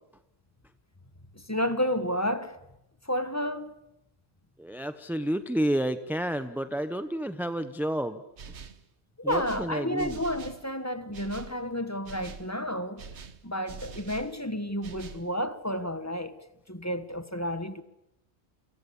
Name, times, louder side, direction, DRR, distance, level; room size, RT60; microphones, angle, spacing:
voice 1, 1.3-2.6 3.0-3.8 9.2-13.0 13.4-16.4 16.7-17.8, equal, 15° left, 1.3 m, -31 dB
voice 2, 4.6-8.2 9.2-10.2, right 1 dB, ahead, 0.8 m, -30 dB
sound 1, 8.4-8.9 9.3-10.7 11.1-11.6 12.0-12.5 13.0-14.3 14.8-15.3, right 5 dB, 85° right, 1.5 m, -44 dB
30.0 x 26.5 x 7.1 m
omnidirectional pair, 1.1 m